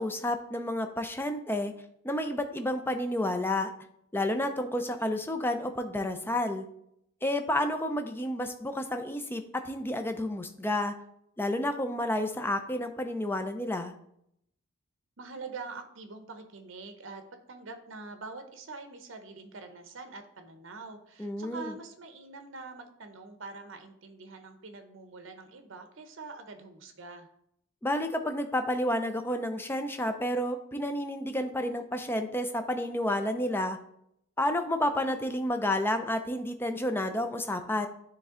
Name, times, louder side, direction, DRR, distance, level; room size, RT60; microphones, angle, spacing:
voice 1, 0.0-1.7 2.0-3.7 4.1-6.6 7.2-10.9 11.4-13.9 21.2-21.7 27.8-33.8 34.4-37.9, left 1 dB, 10° left, 6 dB, 0.4 m, -30 dB
voice 2, 15.2-27.3, right 3 dB, 60° right, 7 dB, 0.7 m, -45 dB
9.6 x 3.2 x 3.7 m, 0.73 s
head